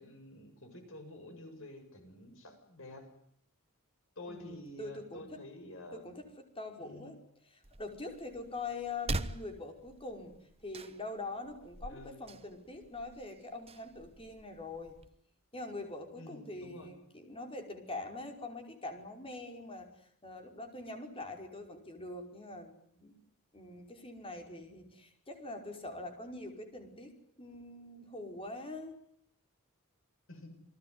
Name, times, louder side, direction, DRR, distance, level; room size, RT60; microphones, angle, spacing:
voice 1, 0.0-3.1 4.2-6.0 6.8-7.2 11.9-12.2 16.2-16.9 30.3-30.5, left 1 dB, 65° left, 7 dB, 7.0 m, -49 dB
voice 2, 4.3-5.4 5.9-7.2 7.4-10.3 10.6-15.0 15.5-23.1 23.5-29.0, left 2 dB, 25° left, 5 dB, 5.2 m, -44 dB
sound 1, 7.6-15.1, right 2 dB, 25° right, 1.2 m, -44 dB
29.5 x 20.0 x 9.7 m, 0.66 s
head